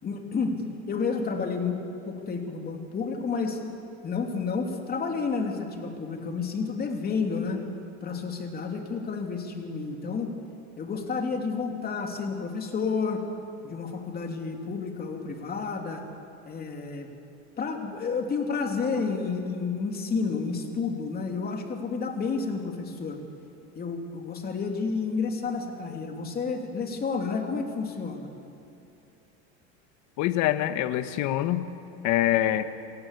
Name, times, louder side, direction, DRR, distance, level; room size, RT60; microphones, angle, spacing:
voice 1, 0.0-0.6 0.9-3.6 4.0-7.6 8.0-10.3 10.8-13.2 13.6-16.0 16.4-17.1 17.6-23.2 23.7-28.3, left 5 dB, 25° left, 3 dB, 3.0 m, -30 dB
voice 2, 30.2-31.7 32.0-32.6, left 13 dB, 55° left, 10 dB, 1.4 m, -25 dB
28.0 x 17.5 x 8.4 m, 2.8 s
supercardioid pair, 135°, 34 cm